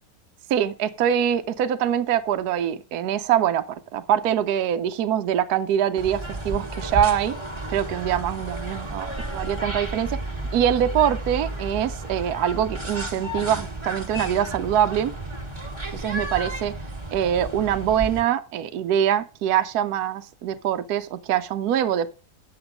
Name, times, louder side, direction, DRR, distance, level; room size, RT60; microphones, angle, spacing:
voice 1, 0.5-7.4 7.7-10.2 10.5-15.1 15.9-16.7 17.1-22.1, right 10 dB, 75° right, 1.2 m, -24 dB
sound 1, 6.0-18.2, right 2 dB, 20° right, 1.6 m, -32 dB
9.3 x 8.0 x 5.0 m
omnidirectional pair, 1.7 m